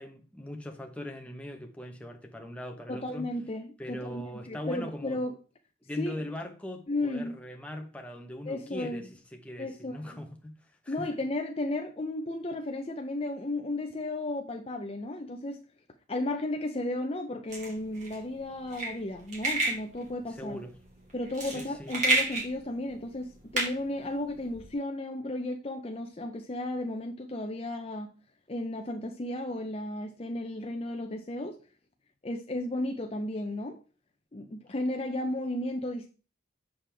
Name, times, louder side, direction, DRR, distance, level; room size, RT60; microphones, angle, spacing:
voice 1, 0.0-3.3 3.8-5.2 5.8-10.5 10.8-11.1 20.3-20.8 21.5-21.9, left 1 dB, 5° left, 1.0 m, -40 dB
voice 2, 2.9-5.4 6.0-6.2 6.9-7.4 8.5-9.0 9.6-10.2 10.9-15.6 16.1-20.6 21.1-28.1 28.5-31.6 32.2-33.8 34.3-36.1, left 1 dB, 30° left, 0.6 m, -34 dB
sound 1, 17.5-24.7, right 2 dB, 35° right, 2.4 m, -32 dB
7.5 x 6.5 x 3.4 m
head